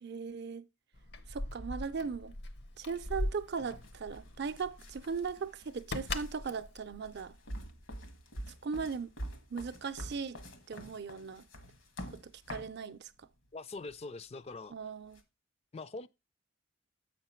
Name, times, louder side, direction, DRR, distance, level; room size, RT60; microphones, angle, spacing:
voice 1, 0.0-0.6 1.3-2.3 2.8-7.4 8.6-9.1 9.5-10.4 10.7-11.4 12.1-13.3 14.7-15.2, right 5 dB, 55° right, 0.5 m, -38 dB
Keys jangling, 0.9-7.9, left 1 dB, 55° left, 0.8 m, -41 dB
sound 1, 3.8-12.8 13.8-13.9 15.1-15.2, equal, 75° left, 1.4 m, -47 dB
voice 2, 13.5-14.7 15.7-16.1, left 3 dB, 30° left, 0.4 m, -43 dB
7.5 x 5.8 x 4.3 m
head